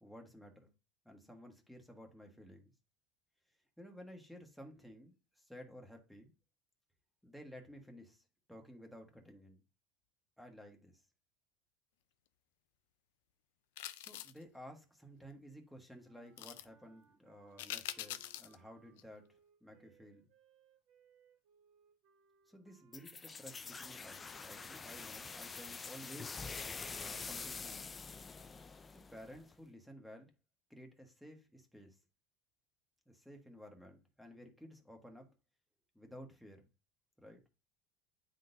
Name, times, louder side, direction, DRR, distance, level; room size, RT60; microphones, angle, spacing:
voice 1, 0.0-0.7 1.0-2.7 3.8-6.3 7.2-9.6 10.4-11.0 14.0-19.3 19.6-20.3 22.5-26.4 27.0-27.9 28.9-30.3 30.7-32.0 33.1-35.3 35.9-36.6 37.2-37.4, equal, ahead, 1.4 m, -54 dB
sound 1, 13.8-14.4 16.4-16.6 17.6-18.5 19.0-19.1, left 13 dB, 85° left, 0.4 m, -44 dB
sound 2, 16.0-25.6, right 6 dB, 55° right, 1.4 m, -70 dB
sound 3, 22.9-29.5, left 4 dB, 20° left, 0.4 m, -46 dB
9.5 x 3.8 x 2.7 m
supercardioid pair, 115°, 0 cm